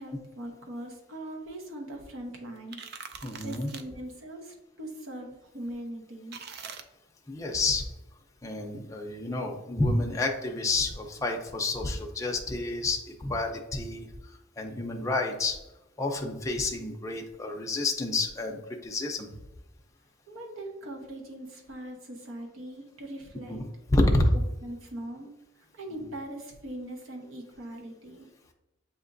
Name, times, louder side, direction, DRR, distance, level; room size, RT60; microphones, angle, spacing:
voice 1, 0.0-3.0 3.4-6.4 20.3-23.6 24.6-25.3 25.7-28.3, right 1 dB, 70° right, 1 dB, 0.8 m, -41 dB
sound 1, 2.6-3.8 6.3-6.8, right 6 dB, 50° right, 0.3 m, -43 dB
voice 2, 3.2-3.7 7.3-7.9 8.4-14.1 14.6-15.6 16.0-19.3 23.5-23.6 23.9-24.3, left 2 dB, 15° left, 1 dB, 0.5 m, -29 dB
7.2 x 2.9 x 2.6 m, 0.96 s
head